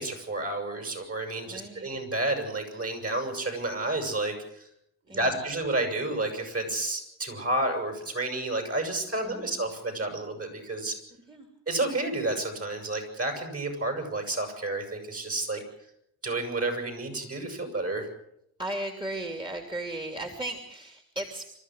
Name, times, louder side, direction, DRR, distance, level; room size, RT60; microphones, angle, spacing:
voice 1, 0.0-4.6 5.1-10.9 11.7-15.6 16.2-18.1, right 2 dB, 40° right, 5 dB, 7.8 m, -30 dB
voice 2, 1.4-1.9 5.1-5.3 9.2-9.6 11.3-11.5 18.6-21.4, right 1 dB, 15° right, 4 dB, 2.9 m, -36 dB
28.0 x 13.5 x 8.0 m, 0.77 s
cardioid pair, 85°, 35 cm